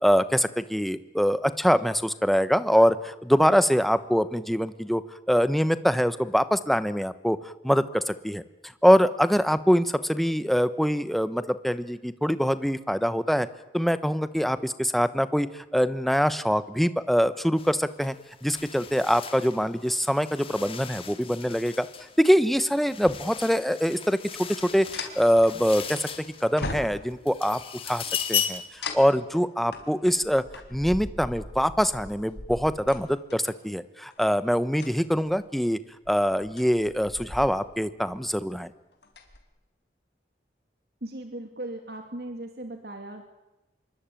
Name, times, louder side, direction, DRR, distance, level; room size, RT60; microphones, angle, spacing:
voice 1, 0.0-5.0 5.3-8.4 8.8-13.5 13.7-18.1 18.4-21.9 22.2-24.5 24.7-27.6 27.9-30.4 30.7-35.8 36.1-38.7, equal, ahead, 13 dB, 1.0 m, -24 dB
sound 1, 17.6-17.7 18.0-26.7 27.1-28.8, left 8 dB, 30° left, 2.3 m, -36 dB
sound 2, 24.9-26.1 26.6-27.4 28.8-33.5 34.1-34.3 34.7-35.4 36.0-37.8 38.1-38.5 38.9-39.4, left 2 dB, 85° left, 4.4 m, -39 dB
voice 2, 41.0-43.2, right 1 dB, 60° right, 5 dB, 2.5 m, -37 dB
26.5 x 23.0 x 9.1 m, 0.98 s
head